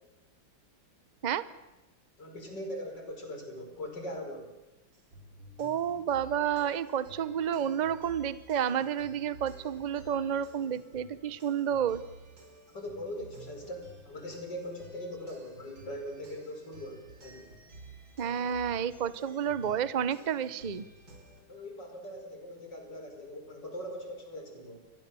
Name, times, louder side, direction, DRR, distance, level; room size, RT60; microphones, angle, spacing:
voice 1, 2.2-4.5 12.7-17.5 21.5-24.8, equal, 60° left, 3 dB, 5.5 m, -41 dB
sound 1, 4.9-21.4, right 2 dB, 75° right, 6.3 m, -53 dB
voice 2, 5.6-12.0 18.2-20.8, right 8 dB, 45° right, 15 dB, 0.5 m, -30 dB
28.5 x 22.0 x 7.0 m, 1.1 s
omnidirectional pair, 2.1 m